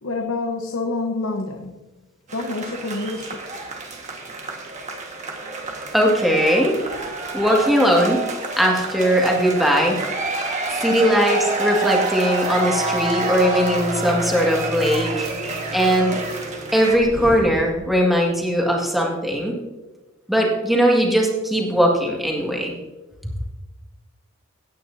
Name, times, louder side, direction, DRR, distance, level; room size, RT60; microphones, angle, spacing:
voice 1, 0.0-1.9 2.3-3.4, left 3 dB, 80° left, 3 dB, 1.0 m, -27 dB
sound 1, 2.3-17.0, right 3 dB, 35° right, 1.6 m, -28 dB
voice 2, 5.9-6.8 7.3-8.2 8.6-10.0 10.7-16.2 16.7-19.6 20.3-22.7, equal, ahead, -2 dB, 1.9 m, -19 dB
sound 2, 11.8-18.2, right 1 dB, 90° right, 3.5 m, -35 dB
17.0 x 9.2 x 2.7 m, 1.2 s
head